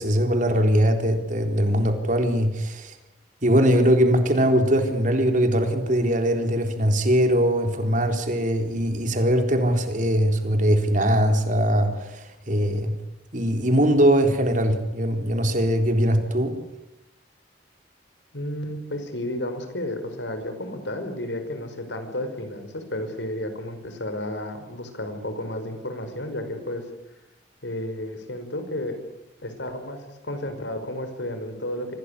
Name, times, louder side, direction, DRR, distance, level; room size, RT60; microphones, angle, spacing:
voice 1, 0.0-2.9 3.4-13.0 13.3-16.6, equal, 45° right, 5 dB, 4.0 m, -21 dB
voice 2, 18.3-26.8 27.6-29.0 29.4-32.0, left 1 dB, 80° left, 8 dB, 5.2 m, -32 dB
25.5 x 18.5 x 10.0 m, 0.93 s
head